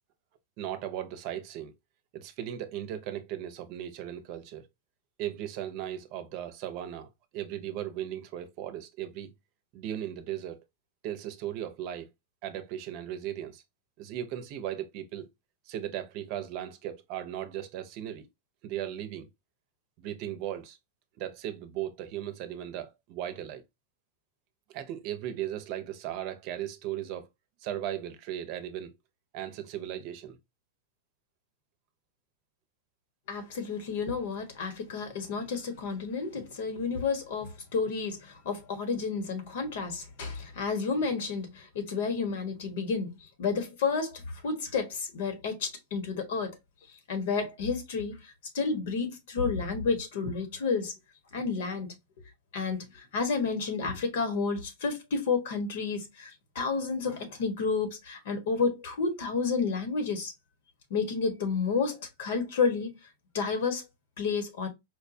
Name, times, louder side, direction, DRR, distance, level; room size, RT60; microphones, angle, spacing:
voice 1, 0.6-1.7 2.1-4.7 5.2-9.3 9.7-10.6 11.0-12.1 12.4-13.6 14.0-15.3 15.7-18.3 18.6-19.3 20.0-20.8 21.2-23.6 24.7-27.3 27.6-28.9 29.3-30.4, right 11 dB, 50° right, 0.7 m, -37 dB
voice 2, 33.3-46.6 47.1-50.9 51.3-60.3 60.9-62.9 63.3-63.8 64.2-64.7, left 5 dB, 70° left, 1.2 m, -31 dB
4.5 x 2.2 x 2.6 m
hypercardioid pair, 130°, 0 cm